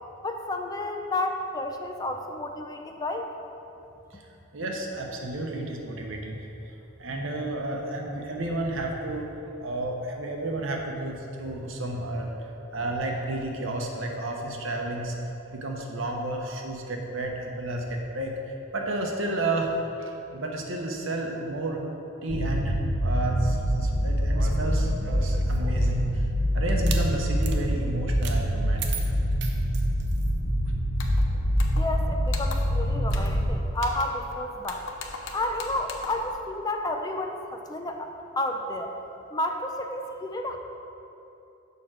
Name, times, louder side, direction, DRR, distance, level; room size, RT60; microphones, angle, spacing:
voice 1, 0.2-3.3 31.7-34.9 35.3-38.9 39.3-40.6, left 1 dB, 20° left, 4 dB, 0.4 m, -31 dB
voice 2, 4.5-9.3 9.6-12.3 12.7-15.2 15.5-19.7 20.0-21.8 22.2-29.1, right 2 dB, 75° right, 1 dB, 1.0 m, -32 dB
sound 1, 22.3-33.5, equal, 90° left, 1.0 m, -25 dB
sound 2, 24.3-25.9 26.7-27.0 27.4-27.6 28.2-28.4 28.8-30.3, right 5 dB, 55° right, 0.7 m, -37 dB
sound 3, 31.0-31.2 31.6-32.0 32.3-32.8 33.1-33.4 33.8-34.3 34.6-36.3, left 4 dB, 70° left, 0.7 m, -40 dB
6.8 x 5.0 x 6.2 m, 3.0 s
head